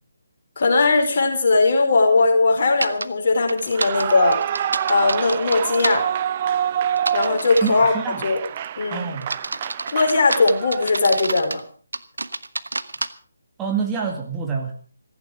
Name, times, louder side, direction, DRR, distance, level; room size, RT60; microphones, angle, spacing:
voice 1, 0.6-4.4 4.9-6.0 7.1-7.9 8.2-8.4 8.8-9.1 9.9-11.6, left 3 dB, 40° left, 2 dB, 4.8 m, -19 dB
sound 1, 2.8-3.1 3.5-6.0 7.0-7.8 8.4-8.7 9.2-11.6 11.9-13.1, right 2 dB, 70° right, 1.2 m, -28 dB
Clapping / Cheering / Applause, 3.7-11.1, right 10 dB, 30° right, 0.7 m, -27 dB
voice 2, 7.6-8.3 8.9-9.3 13.6-14.7, right 6 dB, 10° right, 0 dB, 2.0 m, -26 dB
16.5 x 15.5 x 5.0 m, 0.42 s
figure-of-eight pair, 145°, 0 cm